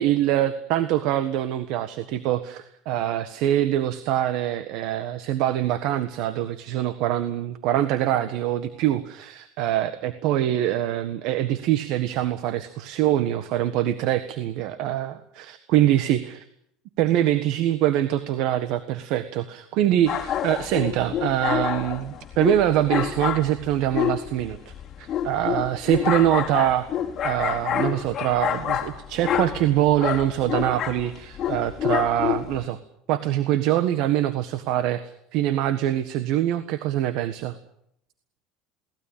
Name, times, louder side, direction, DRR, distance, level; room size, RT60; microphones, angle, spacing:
voice 1, 0.0-16.4 17.0-26.9 27.2-32.8 33.1-35.0 35.3-37.5, right 12 dB, 65° right, 11 dB, 1.5 m, -24 dB
sound 1, 20.1-32.7, left 10 dB, 35° left, 3.4 m, -28 dB
23.0 x 18.5 x 9.0 m, 0.75 s
supercardioid pair, 135°, 0 cm